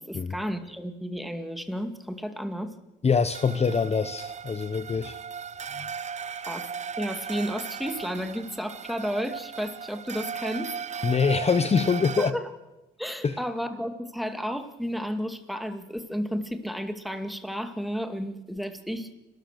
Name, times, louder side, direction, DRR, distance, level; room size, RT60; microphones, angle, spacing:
voice 1, 0.1-2.7 6.5-6.7 7.0-11.1 12.2-12.5 13.0-19.2, equal, ahead, 7 dB, 2.3 m, -32 dB
voice 2, 3.0-5.2 5.7-5.9 11.0-12.3 13.2-13.4, left 5 dB, 30° left, 11 dB, 1.0 m, -24 dB
sound 1, 3.3-12.3, right 7 dB, 35° right, 0.6 m, -37 dB
29.5 x 13.5 x 6.8 m, 1.0 s
cardioid pair, 90°, 20 cm